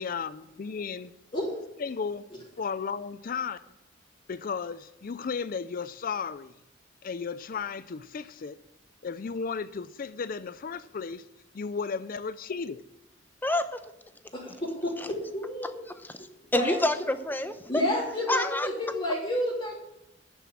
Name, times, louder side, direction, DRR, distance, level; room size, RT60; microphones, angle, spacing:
voice 1, 0.0-1.1 1.8-2.3 2.6-3.6 4.3-6.5 7.0-8.6 9.0-11.2 11.5-12.8, left 5 dB, 50° left, 14 dB, 0.4 m, -34 dB
voice 2, 13.4-13.8 14.5-14.6 15.0-15.1 16.0-16.3 16.5-17.8 18.3-18.7, left 1 dB, 10° left, 10 dB, 0.8 m, -28 dB
voice 3, 14.3-14.9 15.3-15.8 16.5-16.8 17.7-19.7, left 1 dB, 30° left, -8 dB, 3.5 m, -29 dB
10.0 x 7.1 x 8.7 m, 0.89 s
head